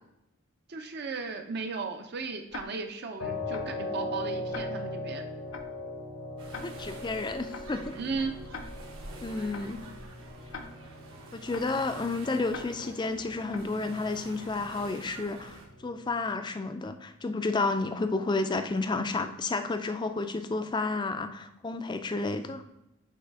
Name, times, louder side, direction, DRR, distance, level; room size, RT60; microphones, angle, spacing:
voice 1, 0.7-5.2 7.9-8.3, right 4 dB, 50° right, 5 dB, 0.5 m, -35 dB
Tick-tock, 2.5-2.6 3.5-3.6 4.5-4.6 5.5-5.6 6.5-6.6 7.5-7.6 8.5-8.6 9.5-9.6 10.5-10.6 11.5-11.6 12.5-12.6 13.5-13.6, left 5 dB, 70° left, 0.7 m, -40 dB
sound 1, 3.2-16.2, left 2 dB, 85° left, 1.2 m, -40 dB
sound 2, 6.4-15.7, right 1 dB, 75° right, 1.2 m, -47 dB
voice 2, 6.6-8.0 9.2-9.8 11.3-22.6, left 3 dB, 20° left, 9 dB, 0.4 m, -31 dB
8.4 x 3.2 x 4.6 m, 0.88 s
head